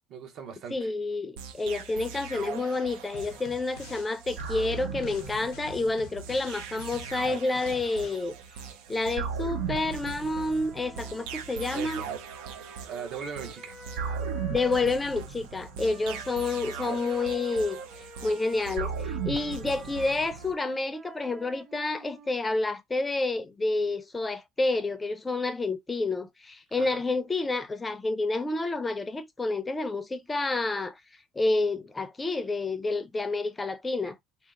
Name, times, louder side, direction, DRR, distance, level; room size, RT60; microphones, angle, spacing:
voice 1, 0.1-0.9 11.7-12.1 12.6-13.8 26.8-27.0, right 6 dB, 55° right, 0.9 m, -40 dB
voice 2, 0.7-8.3 8.9-12.0 14.5-17.8 18.2-31.0 31.4-34.2, left 3 dB, 20° left, 0.5 m, -29 dB
sound 1, 1.4-20.5, right 6 dB, 85° right, 0.5 m, -38 dB
sound 2, 3.1-4.1 4.4-8.2, left 11 dB, 80° left, 0.5 m, -49 dB
Wind instrument woodwind instrument, 9.4-15.2 15.9-22.4, right 4 dB, 40° right, 1.3 m, -47 dB
2.8 x 2.0 x 3.6 m
supercardioid pair, 105°, 0 cm